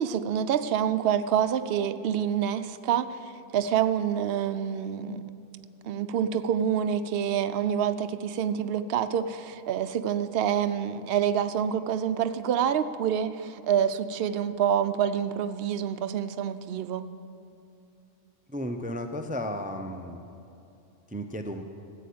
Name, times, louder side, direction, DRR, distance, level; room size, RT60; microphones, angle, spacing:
voice 1, 0.0-5.2 5.8-17.1, right 9 dB, 60° right, 10 dB, 0.8 m, -27 dB
voice 2, 18.5-20.2 21.1-21.6, equal, 10° right, 6 dB, 0.5 m, -34 dB
14.5 x 8.4 x 8.5 m, 2.7 s
omnidirectional pair, 1.2 m